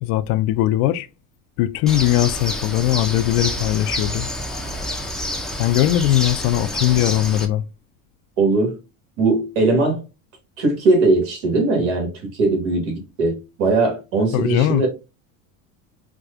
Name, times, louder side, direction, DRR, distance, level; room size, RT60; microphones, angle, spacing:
voice 1, 0.0-1.1 1.6-4.3 5.6-7.6 14.3-14.8, left 14 dB, 70° left, 0.6 m, -20 dB
Bird, 1.9-7.4, left 1 dB, ahead, 0.5 m, -28 dB
voice 2, 8.4-8.7 9.2-10.0 10.6-12.1 12.4-14.9, right 3 dB, 80° right, 1.9 m, -19 dB
4.6 x 2.3 x 2.4 m
supercardioid pair, 120°, 41 cm